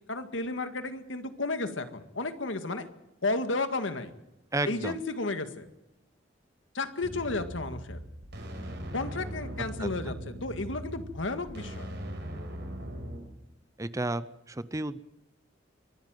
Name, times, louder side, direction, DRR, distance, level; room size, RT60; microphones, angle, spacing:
voice 1, 0.1-2.8 3.2-4.1 4.6-5.7 6.7-8.0 8.9-11.9, left 3 dB, 85° left, 8 dB, 1.9 m, -33 dB
voice 2, 4.5-5.0 9.8-10.2 13.8-15.0, right 2 dB, 15° right, 15 dB, 0.7 m, -33 dB
sound 1, 7.0-13.2, equal, 65° right, 4.9 m, -40 dB
24.0 x 13.0 x 9.2 m, 0.90 s
head